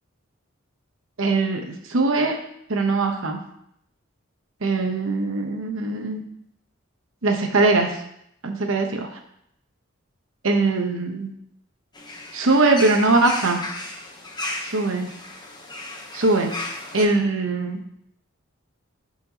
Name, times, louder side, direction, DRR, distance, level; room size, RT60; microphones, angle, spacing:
voice 1, 1.2-2.4 2.7-3.4 4.6-6.2 7.2-8.0 8.4-9.2 10.4-11.3 12.3-13.6 14.6-15.1 16.1-16.5 16.9-17.8, right 3 dB, 80° right, 4 dB, 1.0 m, -21 dB
sound 1, 11.9-17.0, left 2 dB, 20° left, 0.9 m, -35 dB
11.5 x 4.4 x 2.9 m, 0.75 s
head